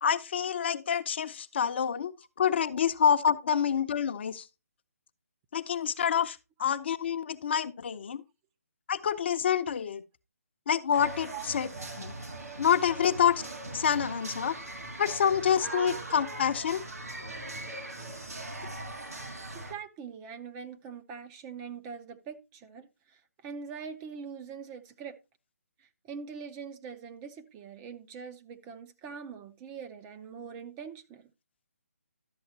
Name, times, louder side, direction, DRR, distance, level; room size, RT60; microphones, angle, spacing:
voice 1, 0.0-2.1 2.4-4.4 5.5-8.2 8.9-10.0 10.7-11.7 12.0-12.1 12.6-13.4 13.7-14.5 15.0-16.8, left 8 dB, 45° left, 0.7 m, -27 dB
sound 1, 10.9-19.7, right 2 dB, 80° right, 2.1 m, -40 dB
voice 2, 19.5-25.2 25.8-31.3, right 6 dB, 20° right, 0.6 m, -43 dB
12.0 x 7.7 x 2.8 m
figure-of-eight pair, 145°, 8 cm